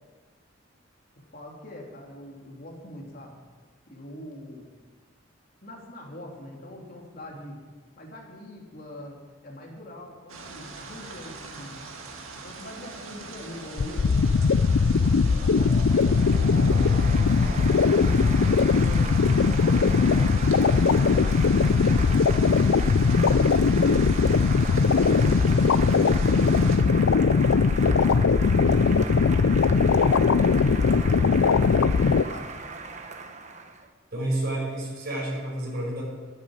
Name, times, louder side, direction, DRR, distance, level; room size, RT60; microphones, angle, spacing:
voice 1, 1.1-3.3 3.9-4.7 5.6-7.6 8.0-9.2 9.4-11.9 12.3-14.2 14.8-19.1 19.6-23.9 24.4-28.0 28.5-32.5, left 1 dB, 45° left, -1 dB, 3.2 m, -43 dB
sound 1, 10.3-26.8, right 2 dB, 85° right, 2.1 m, -40 dB
sound 2, 13.8-32.2, left 5 dB, 75° left, 0.4 m, -20 dB
Applause, 15.0-33.9, right 4 dB, 35° right, 1.1 m, -38 dB
voice 2, 34.1-36.0, right 1 dB, 50° right, -4 dB, 5.8 m, -29 dB
11.5 x 11.0 x 8.8 m, 1.4 s
head